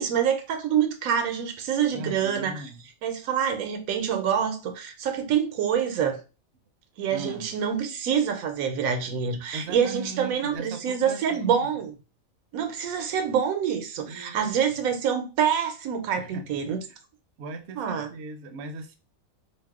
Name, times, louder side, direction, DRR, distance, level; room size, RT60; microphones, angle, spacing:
voice 1, 0.0-2.7 3.0-6.2 7.0-11.9 12.5-16.8 17.8-18.1, right 8 dB, 85° right, 1.0 m, -26 dB
voice 2, 1.9-2.8 7.1-7.5 9.5-11.7 14.1-14.8 16.2-16.5 16.8-17.0 17.4-19.0, right 3 dB, 65° right, 0.7 m, -39 dB
2.6 x 2.0 x 3.5 m
omnidirectional pair, 1.4 m